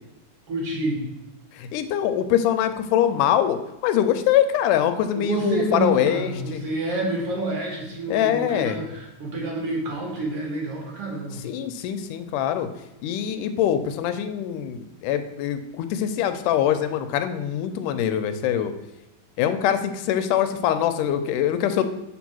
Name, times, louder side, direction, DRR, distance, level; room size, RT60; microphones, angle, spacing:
voice 1, 0.5-1.0 5.1-11.4, right 2 dB, 55° right, -1 dB, 2.3 m, -28 dB
voice 2, 1.5-6.6 8.1-8.8 11.4-12.7 13.0-18.7 19.4-21.8, left 10 dB, 85° left, 9 dB, 2.1 m, -23 dB
6.1 x 4.3 x 6.0 m, 0.98 s
omnidirectional pair, 3.6 m